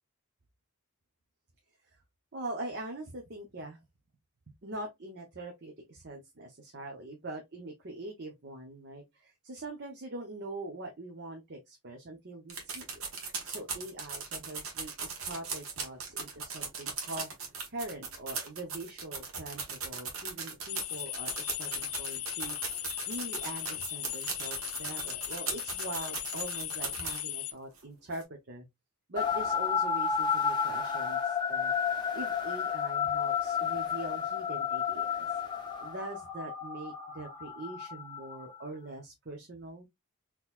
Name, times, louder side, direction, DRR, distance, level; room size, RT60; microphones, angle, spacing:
voice 1, 2.3-3.8 4.5-13.0 13.4-17.3 17.7-22.8 23.1-28.7 29.1-31.7 32.1-35.3 35.8-39.9, right 1 dB, 50° right, 0.8 m, -43 dB
sound 1, 12.5-27.4 27.8-27.9 28.1-28.2, right 5 dB, 70° right, 1.2 m, -38 dB
sound 2, 20.7-27.5, left 15 dB, 75° left, 0.4 m, -38 dB
sound 3, 29.2-38.6, left 7 dB, 20° left, 0.8 m, -32 dB
3.9 x 3.0 x 2.5 m
head